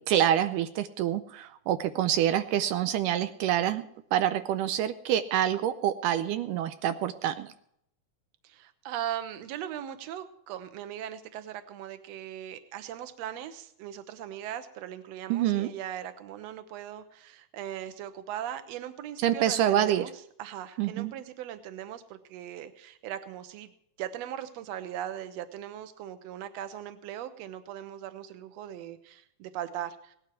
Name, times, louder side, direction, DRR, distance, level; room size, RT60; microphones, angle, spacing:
voice 1, 0.0-3.8 4.1-7.5 15.3-15.7 19.2-20.1 20.8-21.1, right 11 dB, 80° right, 10 dB, 2.2 m, -26 dB
voice 2, 8.4-20.1 20.4-23.7 24.0-30.2, right 11 dB, 65° right, 10 dB, 2.0 m, -39 dB
18.0 x 12.0 x 4.5 m, 0.71 s
omnidirectional pair, 3.8 m